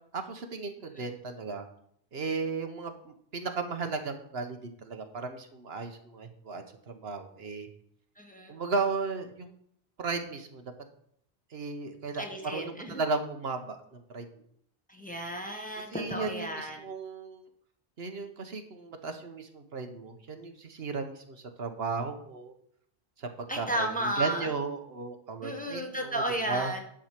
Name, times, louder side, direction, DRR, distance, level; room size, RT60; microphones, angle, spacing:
voice 1, 0.1-1.7 2.1-7.7 8.5-9.5 10.0-10.7 11.5-14.4 15.9-17.4 18.0-22.5 23.2-26.7, right 4 dB, 75° right, 6 dB, 1.4 m, -35 dB
voice 2, 8.2-8.5 12.2-13.0 14.9-16.8 23.5-24.5 25.4-26.8, right 1 dB, 10° left, 1 dB, 1.4 m, -33 dB
10.5 x 5.0 x 7.5 m, 0.68 s
omnidirectional pair, 1.0 m